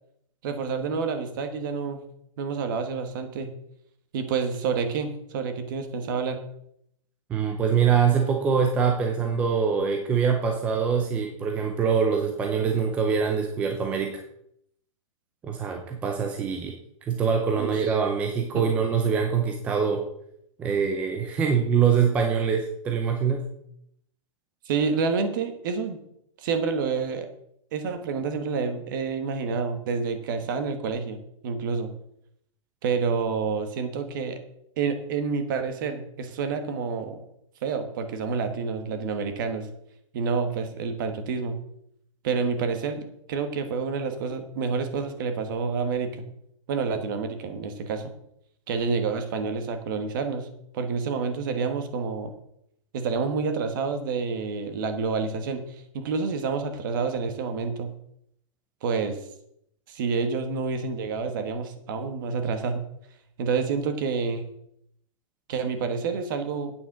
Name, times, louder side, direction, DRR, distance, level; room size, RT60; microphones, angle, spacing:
voice 1, 0.4-2.0 2.4-3.5 4.1-6.4 17.6-17.9 18.5-18.6 24.6-26.0 26.4-27.3 27.7-31.2 31.4-31.9 32.8-34.4 34.8-37.2 37.6-39.7 40.1-41.6 42.2-46.2 46.7-48.1 48.7-50.5 50.7-52.3 52.9-57.9 58.8-59.2 59.9-62.8 63.4-64.4 65.5-66.7, right 5 dB, 35° right, 8 dB, 1.4 m, -28 dB
voice 2, 7.3-14.2 15.4-16.7 17.1-20.0 20.6-23.5, right 6 dB, 10° right, 3 dB, 0.5 m, -24 dB
8.9 x 7.3 x 5.9 m, 0.74 s
hypercardioid pair, 175°, 17 cm